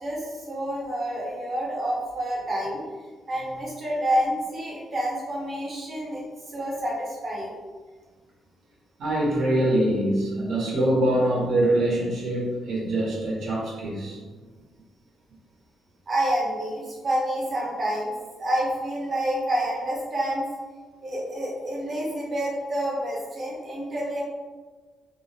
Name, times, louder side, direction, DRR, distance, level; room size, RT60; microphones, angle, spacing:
voice 1, 0.0-2.8 3.3-6.2 6.5-7.5 16.1-18.1 18.4-20.5 21.0-24.2, right 1 dB, 35° right, -4 dB, 0.7 m, -28 dB
voice 2, 9.0-14.2, right 1 dB, 65° right, -5 dB, 0.7 m, -24 dB
2.3 x 2.0 x 2.7 m, 1.4 s
cardioid pair, 160°, 0 cm